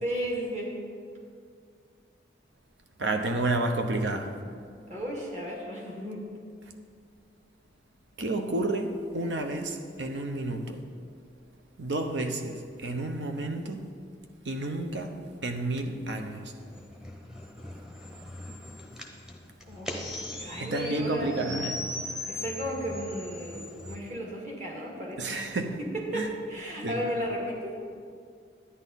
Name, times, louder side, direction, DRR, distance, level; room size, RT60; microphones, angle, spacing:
voice 1, 0.0-0.8 4.9-6.3 19.7-20.1 20.4-21.6 22.3-25.4 25.8-27.8, equal, 40° right, 2.0 m, -34 dB
voice 2, 3.0-4.4 8.2-10.8 11.8-13.9 14.4-16.5 20.6-21.9 25.2-25.8 26.1-26.3 26.8-27.0, right 2 dB, 85° right, 0.9 m, -31 dB
sound 1, 16.6-24.0, left 1 dB, 5° right, 0.8 m, -39 dB
11.0 x 9.6 x 4.1 m
head